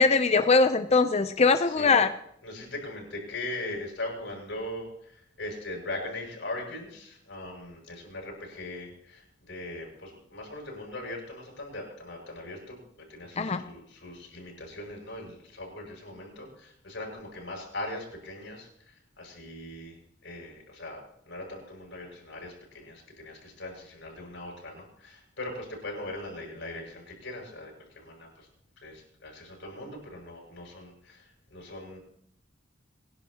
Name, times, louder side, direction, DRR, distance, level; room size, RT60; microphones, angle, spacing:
voice 1, 0.0-2.1 13.4-13.6, left 4 dB, 35° left, 9 dB, 0.6 m, -21 dB
voice 2, 2.4-4.9 5.4-8.9 9.5-12.8 13.1-16.5 16.8-18.7 19.2-20.0 20.2-28.3 28.8-30.9 31.5-32.0, left 1 dB, 65° left, 0 dB, 7.4 m, -40 dB
27.5 x 11.0 x 2.9 m, 0.70 s
head